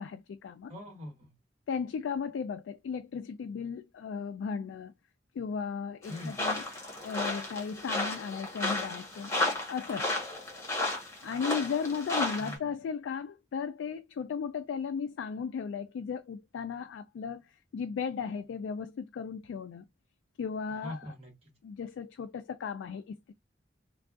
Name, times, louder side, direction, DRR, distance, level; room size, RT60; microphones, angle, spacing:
voice 1, 0.0-0.7 1.7-4.9 5.4-6.6 7.0-9.3 9.7-10.1 11.2-17.4 17.7-19.8 20.4-21.1 21.6-23.3, left 6 dB, 75° left, 0.3 m, -35 dB
voice 2, 0.7-1.3 6.1-6.6 12.4-12.7 20.8-21.5, left 1 dB, 35° right, 1.6 m, -43 dB
sound 1, 6.0-12.6, left 2 dB, 15° left, 1.2 m, -33 dB
3.4 x 2.3 x 2.4 m
head